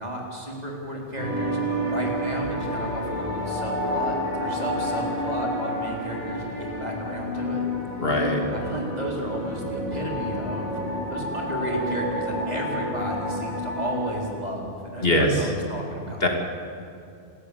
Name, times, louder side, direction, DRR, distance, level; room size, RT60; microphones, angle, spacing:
voice 1, 0.0-7.6 8.4-10.8 11.1-16.3, right 1 dB, 35° right, -1 dB, 4.1 m, -33 dB
sound 1, 1.2-14.2, left 1 dB, 75° left, 7.0 m, -29 dB
voice 2, 8.0-8.4 15.0-15.5 16.2-16.3, left 1 dB, 55° left, 2 dB, 2.7 m, -21 dB
28.5 x 13.5 x 8.6 m, 2.5 s
omnidirectional pair, 1.2 m